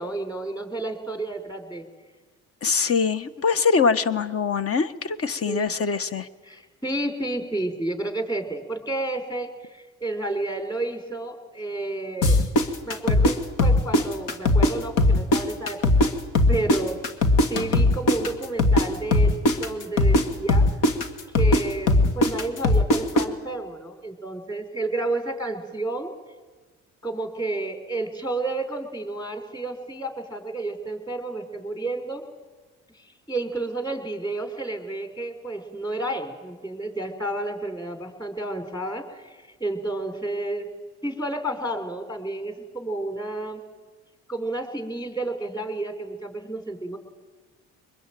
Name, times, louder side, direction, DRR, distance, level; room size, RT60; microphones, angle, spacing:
voice 1, 0.0-1.8 5.4-5.7 6.5-9.5 10.0-12.4 12.8-16.1 16.5-17.0 17.5-20.7 21.3-26.1 27.0-32.2 33.3-39.2 39.6-40.7 41.0-43.6 44.3-47.0, right 2 dB, 10° left, 7 dB, 4.7 m, -31 dB
voice 2, 2.6-6.3, left 5 dB, 45° left, 13 dB, 1.4 m, -23 dB
sound 1, 12.2-14.7 15.0-18.9 19.1-23.2, left 2 dB, 70° left, 2.1 m, -19 dB
24.0 x 21.0 x 9.2 m, 1.3 s
supercardioid pair, 70°, 33 cm